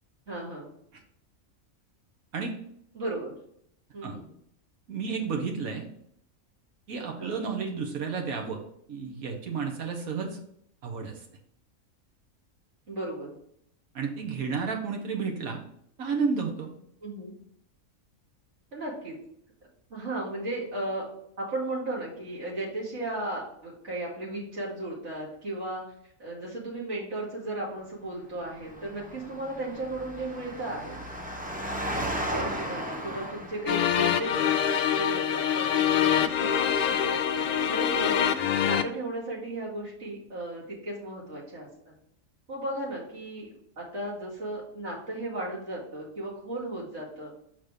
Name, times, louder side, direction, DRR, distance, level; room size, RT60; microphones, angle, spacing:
voice 1, 0.3-0.7 2.9-3.3 3.9-4.3 7.2-7.4 12.9-13.4 17.0-17.3 18.7-19.2 19.9-21.0 21.4-25.8 26.2-31.0 32.1-38.2 38.6-41.9 42.5-43.5 43.8-47.3, right 1 dB, 55° right, -7 dB, 2.8 m, -35 dB
voice 2, 4.9-5.9 6.9-8.6 8.9-10.4 10.8-11.1 13.9-15.6 16.0-16.7, right 5 dB, 85° right, 2 dB, 1.6 m, -31 dB
Engine, 28.4-34.1, right 1 dB, 10° right, 0.5 m, -35 dB
sound 1, 33.7-38.8, left 8 dB, 85° left, 0.4 m, -25 dB
6.1 x 4.1 x 5.0 m, 0.69 s
omnidirectional pair, 1.4 m